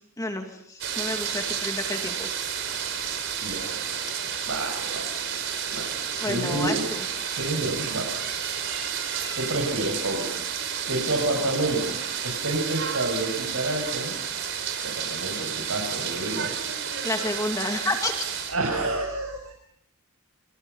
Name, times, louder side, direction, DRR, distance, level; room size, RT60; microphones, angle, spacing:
voice 1, 0.2-2.3 6.2-7.1 17.0-18.1, left 2 dB, 15° left, 3 dB, 2.4 m, -30 dB
sound 1, 0.8-18.6, right 7 dB, 55° right, 4.8 m, -31 dB
voice 2, 3.4-3.8 4.5-5.2 5.7-5.9 6.2-6.9 7.4-8.1 9.2-10.3 10.9-12.0 12.2-14.2 14.8-16.5 18.5-19.5, right 2 dB, 75° right, 0 dB, 6.8 m, -29 dB
29.0 x 25.5 x 5.6 m, 0.70 s
head